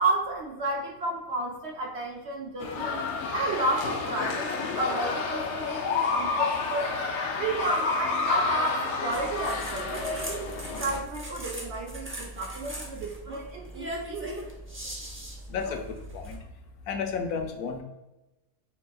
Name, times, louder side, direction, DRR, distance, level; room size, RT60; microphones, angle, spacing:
voice 1, 0.0-3.0 3.3-6.9 7.4-10.5 10.8-14.3, right 2 dB, 55° right, 0 dB, 0.8 m, -32 dB
sound 1, 2.6-11.0, left 4 dB, 65° left, 0.8 m, -29 dB
sound 2, 9.1-16.4, right 1 dB, 20° right, 0.3 m, -39 dB
voice 2, 15.5-16.4 16.9-17.8, left 5 dB, 85° left, 4 dB, 1.1 m, -32 dB
5.1 x 3.7 x 2.3 m, 1.0 s
omnidirectional pair, 1.6 m